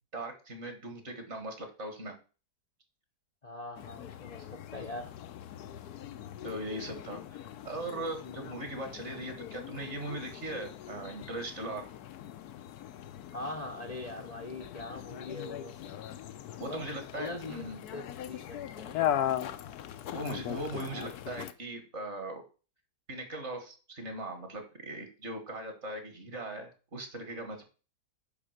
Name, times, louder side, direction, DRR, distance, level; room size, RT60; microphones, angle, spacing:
voice 1, 0.1-2.2 6.4-7.4 7.7-11.9 16.6-17.8 20.1-22.4 23.1-27.6, right 2 dB, 45° right, 2.0 m, -39 dB
voice 2, 3.4-5.1 13.3-16.0 16.7-16.9 17.1-17.6 17.9-19.2, left 2 dB, 35° left, 0.8 m, -42 dB
sound 1, 3.8-21.5, left 11 dB, 75° left, 1.2 m, -39 dB
10.0 x 3.7 x 6.5 m
omnidirectional pair, 1.7 m